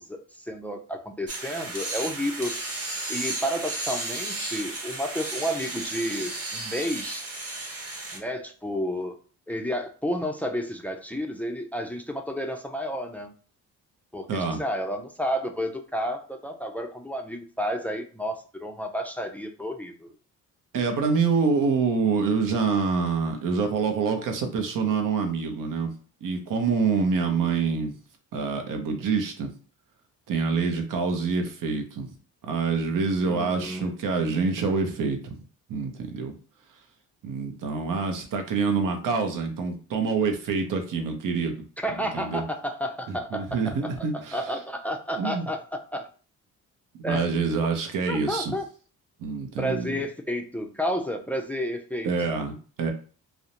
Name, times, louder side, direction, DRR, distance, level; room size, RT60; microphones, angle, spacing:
voice 1, 0.0-2.5 3.1-7.3 8.1-9.2 9.5-13.3 14.1-20.1 33.2-33.9 41.8-44.1 44.3-46.1 47.0-47.2 48.1-48.7 49.6-52.1, equal, 5° left, 5 dB, 0.4 m, -31 dB
sound 1, 1.3-8.2, right 2 dB, 40° right, 1.0 m, -34 dB
voice 2, 14.3-14.6 20.7-25.9 26.2-27.9 28.3-29.5 30.3-32.1 32.4-35.4 35.7-36.3 37.2-41.6 42.0-42.4 43.1-44.4 45.2-45.4 47.0-48.5 49.2-50.0 52.0-52.9, right 5 dB, 65° right, 5 dB, 0.7 m, -26 dB
2.4 x 2.0 x 2.9 m, 0.39 s
supercardioid pair, 60°, 35 cm